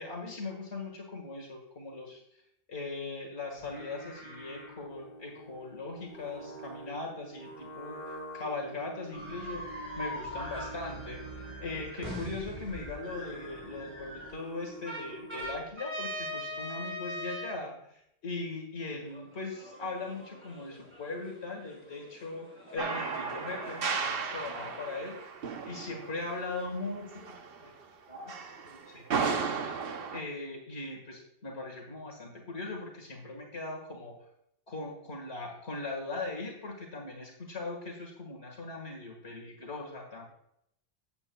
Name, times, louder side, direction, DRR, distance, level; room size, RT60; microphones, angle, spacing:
voice 1, 0.0-2.2 2.7-9.6 10.0-25.2 25.7-27.7 28.1-29.5 30.1-34.1 34.7-40.2, left 3 dB, 80° left, 0 dB, 2.0 m, -40 dB
Singing, 3.5-15.7, right 2 dB, 55° left, 3.3 m, -47 dB
sound 1, 9.1-14.3 14.9-17.6 19.1-24.9, equal, 10° right, 4.1 m, -42 dB
sound 2, 22.8-27.8 28.3-30.2, right 5 dB, 65° right, 1.0 m, -35 dB
13.5 x 8.5 x 2.2 m, 0.76 s
omnidirectional pair, 1.1 m